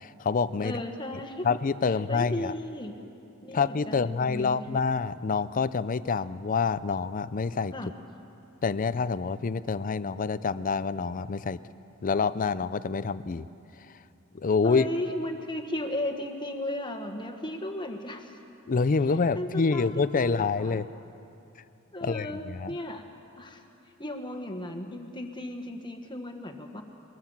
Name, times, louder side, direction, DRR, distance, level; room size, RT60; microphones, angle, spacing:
voice 1, 0.0-0.8 1.4-2.5 3.5-7.7 8.6-11.6 12.0-13.5 14.3-14.8 18.7-20.9 22.0-22.7, left 4 dB, 40° left, 15 dB, 0.5 m, -27 dB
voice 2, 0.6-1.5 2.1-3.0 3.4-4.9 7.7-7.9 14.6-18.4 19.3-20.8 21.9-23.0 23.4-23.6 24.0-26.8, left 1 dB, 20° left, 5 dB, 1.5 m, -35 dB
22.5 x 19.0 x 7.3 m, 2.8 s
head